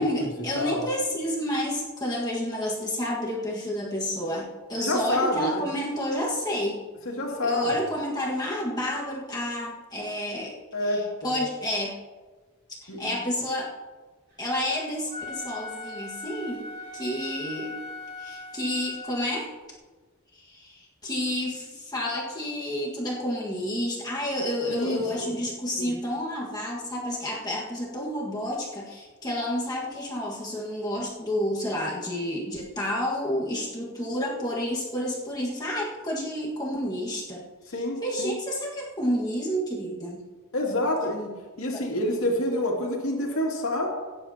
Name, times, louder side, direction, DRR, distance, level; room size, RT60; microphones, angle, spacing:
voice 1, 0.0-6.8 7.4-10.6 10.8-11.9 12.8-13.7 14.4-16.6 16.9-17.8 18.2-19.5 20.3-40.2 41.7-41.8, equal, 20° left, -3 dB, 1.6 m, -30 dB
voice 2, 4.8-5.7 7.1-7.8 10.7-11.4 12.9-13.1 24.7-25.4 25.8-25.9 37.7-38.3 40.5-41.3 41.6-43.9, left 1 dB, 70° left, -1 dB, 2.3 m, -28 dB
Wind instrument woodwind instrument, 15.1-19.4, left 2 dB, 50° right, 4.1 m, -39 dB
17.5 x 10.0 x 2.8 m, 1.3 s
head